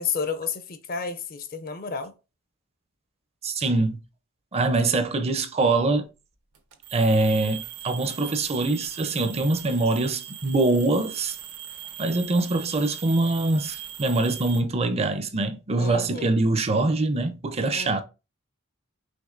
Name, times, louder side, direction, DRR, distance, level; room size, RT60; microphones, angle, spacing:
voice 1, 0.0-2.1 15.8-16.3 17.7-18.0, left 5 dB, 40° left, 0.5 m, -31 dB
voice 2, 3.4-4.0 4.5-6.1 6.9-11.4 12.0-18.0, right 2 dB, 30° right, 0.5 m, -24 dB
sound 1, 6.5-14.6, right 11 dB, 85° right, 1.0 m, -40 dB
5.2 x 3.3 x 2.4 m
head